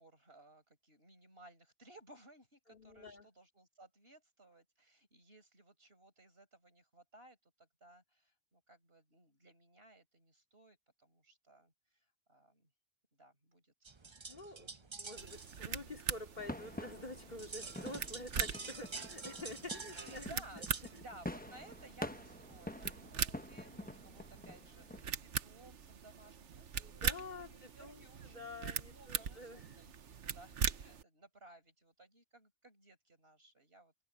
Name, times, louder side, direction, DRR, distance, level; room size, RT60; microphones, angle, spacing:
voice 1, 0.0-12.7 13.1-13.7 14.0-15.3 18.9-19.1 19.9-34.0, right 2 dB, 55° right, 5.7 m, -60 dB
voice 2, 2.7-3.3 14.3-20.6 20.9-21.0 26.8-29.9, left 2 dB, 40° left, 3.2 m, -48 dB
sound 1, 13.9-21.0, right 4 dB, 25° right, 0.8 m, -49 dB
sound 2, 15.2-31.0, right 7 dB, 75° right, 1.4 m, -42 dB
sound 3, 16.4-25.0, left 1 dB, 10° left, 0.9 m, -48 dB
omnidirectional pair, 1.2 m